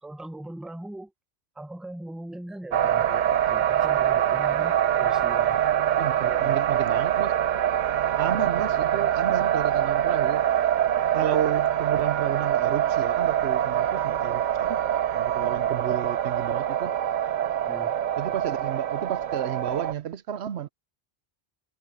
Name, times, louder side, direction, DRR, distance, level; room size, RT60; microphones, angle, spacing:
voice 1, 0.0-1.1 1.5-5.7 6.2-7.0 15.6-15.9 17.7-17.9, right 1 dB, ahead, 0.8 m, -40 dB
sound 1, 2.7-19.9, right 10 dB, 55° right, 0.6 m, -24 dB
voice 2, 6.0-7.4 8.2-10.5 11.1-14.8 15.1-16.9 18.2-20.7, right 10 dB, 80° right, 1.0 m, -32 dB
omnidirectional pair, 1.1 m